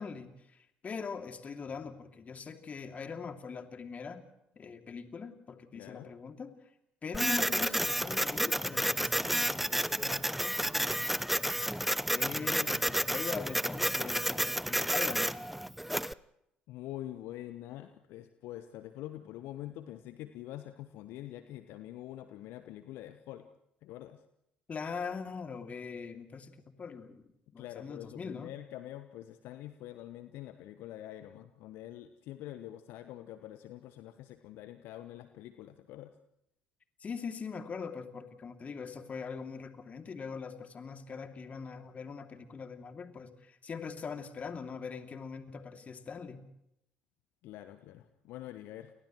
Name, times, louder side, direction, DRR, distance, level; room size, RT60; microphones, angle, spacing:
voice 1, 0.0-4.2 4.6-6.6 7.0-11.2 12.1-15.4 24.7-27.2 27.5-28.5 37.0-46.4, left 5 dB, 35° left, 6 dB, 2.6 m, -42 dB
voice 2, 5.7-6.1 16.7-23.5 23.8-24.2 27.6-36.1 47.4-48.9, left 13 dB, 60° left, 10 dB, 1.1 m, -45 dB
Printer, 7.1-16.1, equal, 5° right, 0.7 m, -31 dB
30.0 x 29.5 x 3.1 m, 0.80 s
figure-of-eight pair, 55°, 4 cm